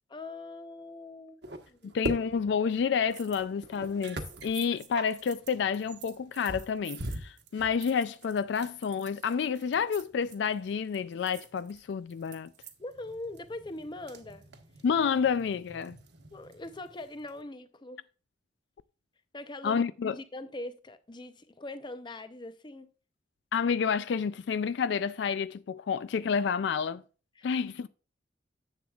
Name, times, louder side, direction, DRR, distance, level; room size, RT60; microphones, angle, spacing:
voice 1, 0.1-1.4 1.7-2.0 12.8-14.5 16.3-18.0 19.3-22.9 27.4-27.5, left 2 dB, 25° left, 0.7 m, -42 dB
sound 1, 1.4-17.4, right 1 dB, 65° right, 1.2 m, -44 dB
voice 2, 1.9-12.5 14.8-16.0 19.6-20.2 23.5-27.0 27.4-27.9, left 6 dB, 70° left, 0.3 m, -29 dB
sound 2, 3.1-3.5 3.7-12.8, right 10 dB, 40° right, 1.2 m, -51 dB
10.5 x 7.8 x 2.4 m
head